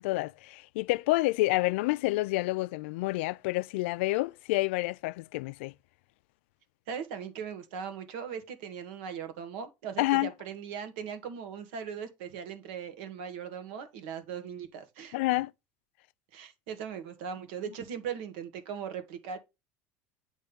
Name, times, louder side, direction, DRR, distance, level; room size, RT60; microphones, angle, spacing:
voice 1, 0.0-5.7 10.0-10.3 15.1-15.5, left 21 dB, 85° left, 0.3 m, -28 dB
voice 2, 6.9-15.2 16.3-19.4, right 7 dB, 80° right, 1.5 m, -39 dB
8.5 x 3.2 x 5.1 m
cardioid pair, 145°, 6 cm